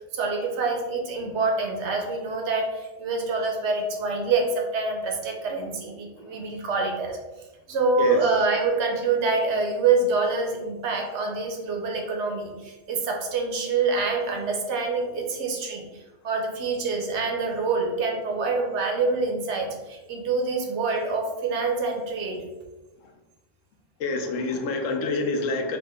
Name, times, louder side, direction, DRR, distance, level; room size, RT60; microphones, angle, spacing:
voice 1, 0.1-7.2 7.7-22.5, right 4 dB, 70° right, 2 dB, 0.9 m, -26 dB
voice 2, 24.0-25.8, left 3 dB, 85° left, 3 dB, 1.0 m, -27 dB
3.0 x 2.5 x 3.4 m, 1.1 s
omnidirectional pair, 1.3 m